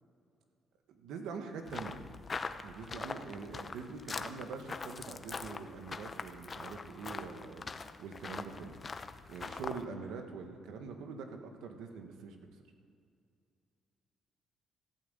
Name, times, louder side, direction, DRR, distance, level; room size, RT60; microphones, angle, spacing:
voice 1, 0.9-2.0 2.6-8.8 9.3-12.4, right 5 dB, 85° right, 4 dB, 1.7 m, -44 dB
sound 1, 1.7-9.8, left 4 dB, 35° left, 0.8 m, -43 dB
14.0 x 9.1 x 8.1 m, 2.3 s
cardioid pair, 90°, 0 cm